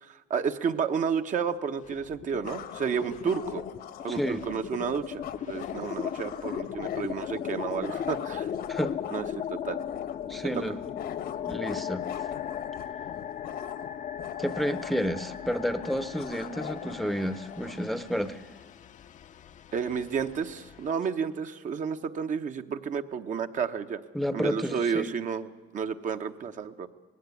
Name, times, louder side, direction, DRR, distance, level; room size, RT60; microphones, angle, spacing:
voice 1, 0.0-3.6 4.0-8.5 9.1-9.8 10.4-10.6 19.7-24.0 24.3-26.9, right 6 dB, 50° right, 7 dB, 1.0 m, -31 dB
sound 1, 1.5-1.6 2.4-17.8, left 9 dB, 65° left, 1.3 m, -43 dB
sound 2, 1.8-2.6 2.9-20.9, left 9 dB, 50° left, 0.7 m, -37 dB
voice 2, 4.1-4.4 8.7-8.9 10.3-10.8 11.5-12.1 14.4-18.4 24.1-25.1, equal, ahead, 12 dB, 0.8 m, -30 dB
18.5 x 16.5 x 9.7 m, 1.4 s
cardioid pair, 110°, 17 cm